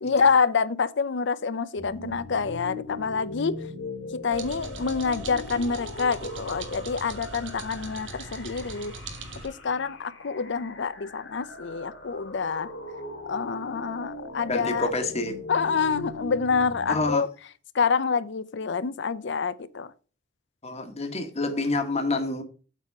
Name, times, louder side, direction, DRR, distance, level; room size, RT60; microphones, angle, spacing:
voice 1, 0.0-3.6 4.1-9.0 9.4-12.7 13.3-14.9 15.5-17.3 17.7-19.9, left 5 dB, 65° left, 0.6 m, -27 dB
sound 1, 1.8-17.1, left 2 dB, 85° left, 2.8 m, -40 dB
sound 2, 4.3-9.5, right 3 dB, 80° right, 1.5 m, -40 dB
voice 2, 14.5-15.3 16.9-17.2 20.6-22.4, left 2 dB, 35° left, 1.4 m, -27 dB
8.1 x 4.2 x 6.4 m
head